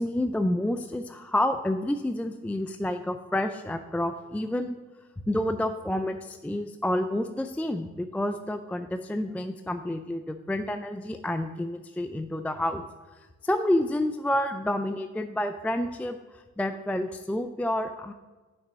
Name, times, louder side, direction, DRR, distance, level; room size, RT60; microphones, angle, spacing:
voice 1, 0.0-4.8 5.3-12.8 13.4-18.1, left 1 dB, 5° left, 8 dB, 0.4 m, -29 dB
6.1 x 6.1 x 6.8 m, 1.3 s
cardioid pair, 90°, 30 cm